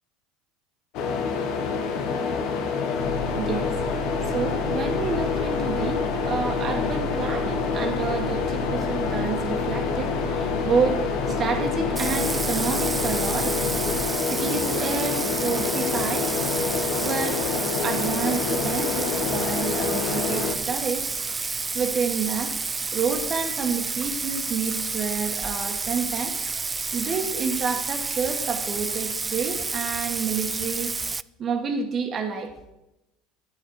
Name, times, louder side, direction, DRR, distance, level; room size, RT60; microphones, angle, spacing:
sound 1, 0.9-20.5, left 5 dB, 60° left, 1.5 m, -27 dB
sound 2, 3.0-14.0, left 3 dB, 90° left, 2.4 m, -32 dB
voice 1, 3.3-3.9 4.2-13.8 14.3-16.3 16.9-21.1 21.7-22.5 22.9-26.4 26.9-30.9 31.4-32.5, right 5 dB, 40° right, 3 dB, 1.8 m, -29 dB
Bathtub (filling or washing), 12.0-31.2, right 4 dB, 20° right, 0.3 m, -30 dB
11.5 x 9.2 x 4.9 m, 0.93 s
hypercardioid pair, 80°, 0 cm